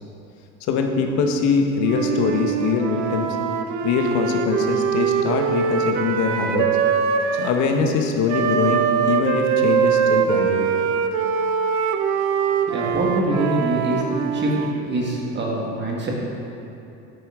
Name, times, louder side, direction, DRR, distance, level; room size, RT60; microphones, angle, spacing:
voice 1, 0.7-3.4 3.8-6.7 7.3-11.0, left 5 dB, 60° left, 3 dB, 1.2 m, -22 dB
Wind instrument woodwind instrument, 1.8-7.6 8.3-14.8, right 7 dB, 55° right, 0.8 m, -22 dB
voice 2, 12.7-14.0 14.3-14.5 14.8-16.1, right 2 dB, 35° right, -2 dB, 1.7 m, -24 dB
10.0 x 8.9 x 3.7 m, 2.9 s
supercardioid pair, 95°, 33 cm